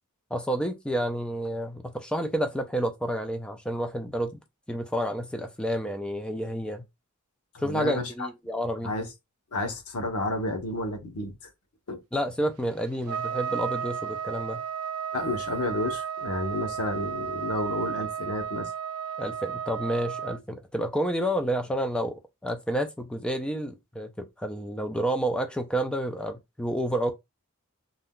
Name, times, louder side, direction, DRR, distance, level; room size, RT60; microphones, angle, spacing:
voice 1, 0.3-4.3 4.7-6.8 7.6-9.0 12.1-14.6 19.2-22.2 22.4-27.1, right 1 dB, 5° left, 0.4 m, -29 dB
voice 2, 7.5-8.3 8.8-9.1 9.5-11.5 11.9-12.0 15.1-18.7, left 2 dB, 90° left, 0.9 m, -31 dB
Trumpet, 13.1-20.4, right 8 dB, 80° right, 0.3 m, -33 dB
2.5 x 2.2 x 3.6 m
head